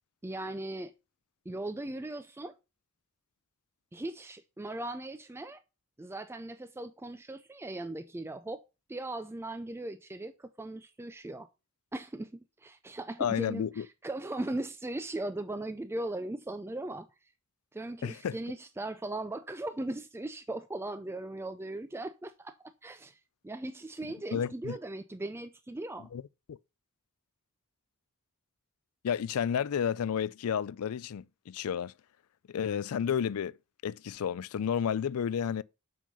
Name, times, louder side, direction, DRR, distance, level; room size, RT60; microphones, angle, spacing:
voice 1, 0.2-0.9 1.5-2.5 3.9-5.6 6.0-8.6 8.9-11.5 11.9-17.1 17.7-22.6 22.8-26.1, right 2 dB, 10° right, 0.4 m, -38 dB
voice 2, 13.2-13.9 18.0-18.4 24.3-24.8 26.1-26.2 26.5-26.6 29.0-31.9 32.5-33.6 33.8-35.6, left 8 dB, 75° left, 0.4 m, -31 dB
7.5 x 5.4 x 5.3 m
head